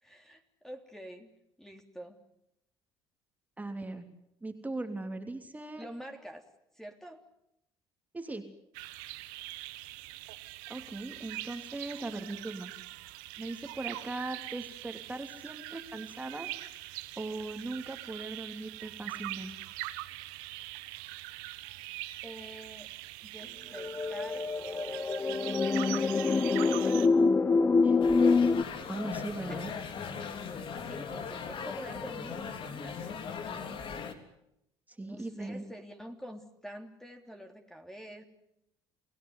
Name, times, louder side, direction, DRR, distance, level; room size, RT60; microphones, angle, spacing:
voice 1, 0.0-1.3 1.6-2.2 5.8-6.4 6.7-7.2 22.2-22.9 23.2-24.5 25.7-26.9 29.5-29.6 30.2-33.2 35.0-38.2, equal, 5° left, 4 dB, 3.3 m, -47 dB
voice 2, 3.6-4.0 4.4-5.8 8.1-8.5 10.7-12.7 13.4-16.5 17.2-19.5 27.8-28.0 28.9-29.7 34.9-35.6, right 2 dB, 15° right, 5 dB, 3.2 m, -39 dB
sound 1, 8.7-27.1, right 18 dB, 90° right, 1.3 m, -43 dB
sound 2, 23.8-28.6, left 4 dB, 20° left, 0.9 m, -25 dB
sound 3, 28.0-34.1, left 6 dB, 55° left, 3.4 m, -39 dB
29.5 x 16.5 x 9.8 m, 0.83 s
supercardioid pair, 80°, 10 cm